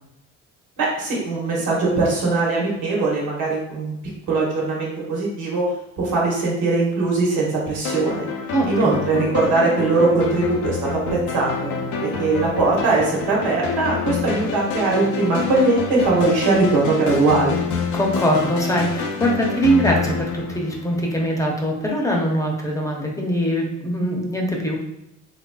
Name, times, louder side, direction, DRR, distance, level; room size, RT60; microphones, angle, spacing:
voice 1, 0.8-3.9 4.3-5.6 6.0-8.3 8.7-11.7 12.0-17.5, right 3 dB, 90° right, -4 dB, 1.5 m, -20 dB
sound 1, 7.8-21.4, left 5 dB, 70° left, 0.6 m, -28 dB
voice 2, 8.5-9.0 17.9-24.8, equal, 10° left, 0 dB, 0.7 m, -22 dB
4.0 x 2.9 x 2.3 m, 0.84 s
cardioid pair, 115°, 30 cm